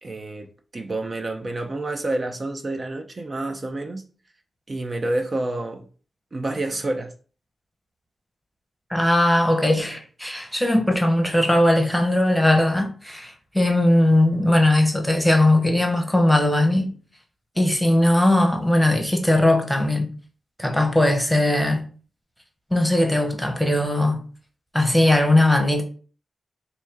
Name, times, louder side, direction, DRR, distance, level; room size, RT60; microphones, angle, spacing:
voice 1, 0.0-4.0 4.7-5.9 6.3-7.1, right 2 dB, 40° right, 0.6 m, -28 dB
voice 2, 8.9-17.0 17.6-20.1 20.6-21.9 22.7-24.2 24.7-25.8, left 1 dB, ahead, 1.0 m, -19 dB
4.3 x 2.7 x 3.5 m
cardioid pair, 75°, 0 cm